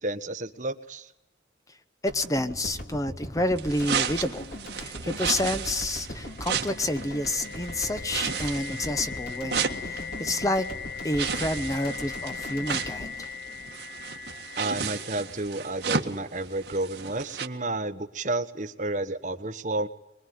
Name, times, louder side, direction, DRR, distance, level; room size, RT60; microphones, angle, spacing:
voice 1, 0.0-1.1 14.6-19.9, right 2 dB, 45° right, 9 dB, 1.2 m, -31 dB
voice 2, 2.0-4.5 4.7-10.7 11.0-13.3, left 1 dB, 20° left, 10 dB, 0.9 m, -29 dB
sound 1, 2.1-14.3, equal, 55° left, 4.2 m, -40 dB
sound 2, 3.6-17.5, right 6 dB, 70° right, 1.8 m, -34 dB
sound 3, 6.0-15.9, left 8 dB, 80° left, 5.0 m, -40 dB
24.0 x 22.0 x 9.5 m, 0.91 s
head